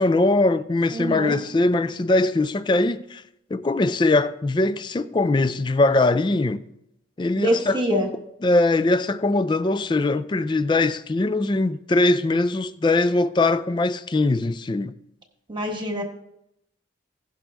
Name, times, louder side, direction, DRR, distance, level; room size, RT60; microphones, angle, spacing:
voice 1, 0.0-3.2 3.5-6.6 7.2-8.1 8.4-14.9, left 2 dB, 25° left, 0.3 m, -21 dB
voice 2, 0.9-1.4 7.3-8.1 15.5-16.0, equal, 25° right, 1.3 m, -25 dB
16.5 x 6.1 x 3.4 m
head